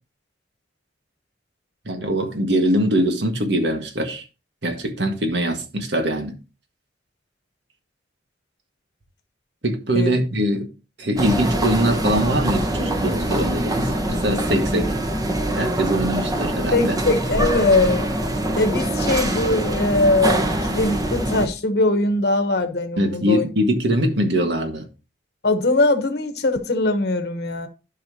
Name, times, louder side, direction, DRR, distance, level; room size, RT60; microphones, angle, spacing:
voice 1, 1.9-4.2 4.6-6.4 9.6-10.7 11.0-15.0 15.6-17.0 23.0-24.9, equal, 75° right, 1.7 m, -22 dB
sound 1, 11.2-21.5, right 1 dB, 20° right, 1.1 m, -24 dB
voice 2, 16.7-18.0 18.6-23.5 25.4-27.7, left 2 dB, 65° left, 1.1 m, -21 dB
11.5 x 5.7 x 2.8 m
head